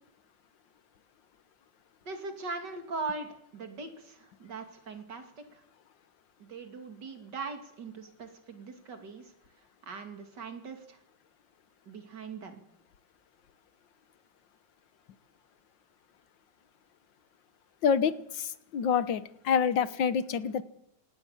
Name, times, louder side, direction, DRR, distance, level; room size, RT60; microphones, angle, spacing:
voice 1, 2.0-5.6 6.4-9.3 9.8-11.0 11.9-12.6, right 4 dB, 70° right, 6 dB, 3.2 m, -40 dB
voice 2, 17.8-20.6, left 7 dB, 85° left, 14 dB, 1.8 m, -27 dB
27.0 x 17.5 x 7.3 m, 0.79 s
omnidirectional pair, 2.0 m